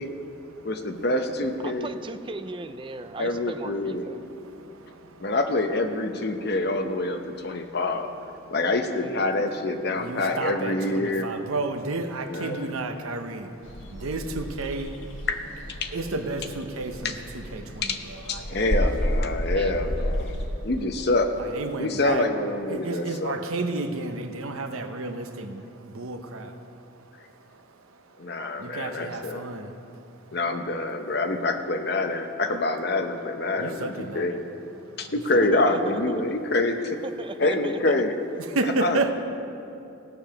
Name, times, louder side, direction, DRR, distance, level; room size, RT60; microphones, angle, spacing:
voice 1, 0.0-1.0 4.4-5.3 7.4-7.8 8.4-8.6 9.9-15.3 15.9-18.6 19.2-19.5 20.3-20.7 21.4-22.3 22.7-30.0 30.3-30.4 33.6-34.4 34.8-35.1 38.5-39.1, right 2 dB, 85° right, 7 dB, 0.9 m, -33 dB
voice 2, 0.6-1.9 3.2-4.1 5.2-8.1 8.5-11.3 12.3-12.7 15.3-15.4 15.8-15.9 17.0-17.1 17.8-18.0 18.3-20.3 20.6-21.3 21.8-23.4 28.2-29.4 30.3-34.3 35.0-37.0 37.4-38.1 38.8-39.1, left 2 dB, 50° left, 6 dB, 0.8 m, -26 dB
voice 3, 1.6-4.2 8.9-9.3 19.5-19.8 35.4-36.0 37.0-38.0, right 2 dB, 25° right, 9 dB, 0.4 m, -37 dB
sound 1, 13.6-20.5, equal, 65° left, 1.4 m, -31 dB
16.5 x 6.9 x 5.9 m, 2.7 s
head